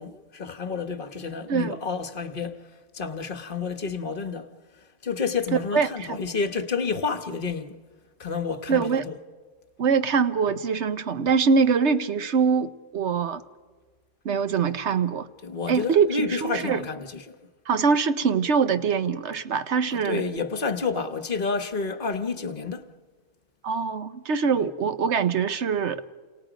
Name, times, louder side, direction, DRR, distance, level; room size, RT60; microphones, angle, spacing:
voice 1, 0.0-2.6 2.9-4.5 5.0-7.8 8.2-9.1 15.4-17.4 19.9-22.8 24.5-24.7, left 4 dB, 40° left, 1.3 m, -30 dB
voice 2, 5.7-6.2 8.7-9.1 9.8-13.4 14.2-15.3 15.7-16.8 17.7-20.2 23.6-26.0, right 5 dB, 55° right, 1.0 m, -23 dB
29.0 x 27.5 x 5.1 m
omnidirectional pair, 1.6 m